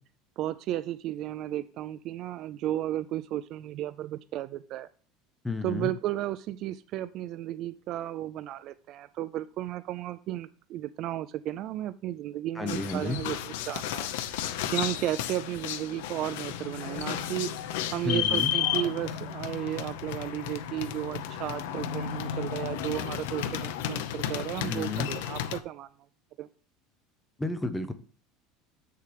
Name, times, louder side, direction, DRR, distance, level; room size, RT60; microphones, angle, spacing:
voice 1, 0.4-4.9 5.6-17.5 17.9-25.9 26.4-26.5, right 13 dB, 35° right, 13 dB, 0.3 m, -34 dB
voice 2, 5.4-5.9 12.6-13.2 18.0-18.5 24.7-25.1 27.4-27.9, left 2 dB, 5° left, 9 dB, 0.6 m, -31 dB
sound 1, 12.7-25.6, left 10 dB, 80° left, 0.7 m, -33 dB
7.6 x 6.7 x 3.3 m, 0.41 s
cardioid pair, 180°, 0 cm